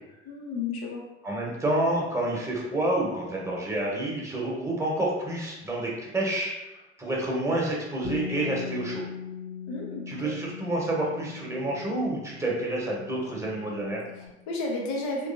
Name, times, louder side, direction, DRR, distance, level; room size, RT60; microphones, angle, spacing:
voice 1, 0.3-1.0 9.7-10.3 14.2-15.3, left 3 dB, 60° left, 0 dB, 0.9 m, -32 dB
voice 2, 1.2-6.5 7.0-9.0 10.1-14.0, right 1 dB, 10° right, -4 dB, 1.2 m, -28 dB
Bass guitar, 8.0-14.3, left 7 dB, 25° left, 1.0 m, -40 dB
3.4 x 3.1 x 2.7 m, 1.0 s
figure-of-eight pair, 50°, 32 cm